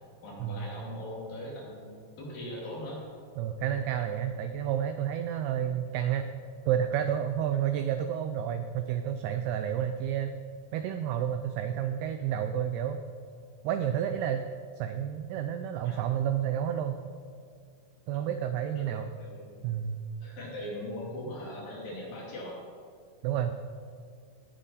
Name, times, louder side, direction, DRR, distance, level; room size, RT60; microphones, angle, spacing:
voice 1, 0.2-3.0 15.8-16.0 18.6-19.5 20.2-22.6, left 1 dB, 55° left, -4 dB, 3.8 m, -40 dB
voice 2, 3.4-6.3 6.7-10.3 10.7-13.0 13.6-14.5 14.8-17.0 18.1-19.2 19.6-20.0 23.2-23.5, right 9 dB, 90° right, 8 dB, 2.3 m, -30 dB
18.0 x 9.0 x 4.1 m, 2.3 s
omnidirectional pair, 5.3 m